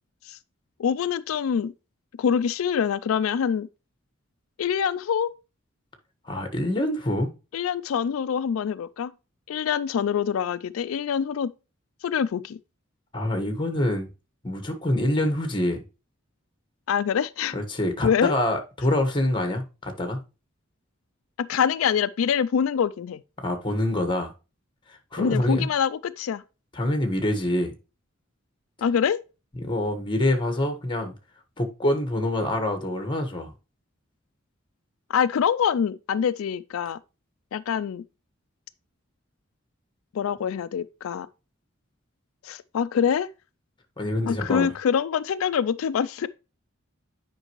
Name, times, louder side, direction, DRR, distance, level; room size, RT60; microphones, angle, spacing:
voice 1, 0.8-1.7 2.2-3.7 4.6-5.3 7.5-9.1 9.5-11.5 12.0-12.6 16.9-17.5 18.0-18.3 21.4-23.2 25.2-26.4 28.8-29.2 35.1-37.0 37.5-38.0 40.1-41.3 42.4-43.3 44.3-46.3, left 7 dB, 90° left, 0.4 m, -25 dB
voice 2, 6.2-7.3 13.1-14.1 14.4-15.8 17.5-20.2 23.4-24.3 24.9-25.7 26.7-27.7 29.5-31.1 31.6-33.5 44.0-44.7, left 1 dB, 25° left, 1.4 m, -26 dB
8.9 x 5.3 x 3.1 m
head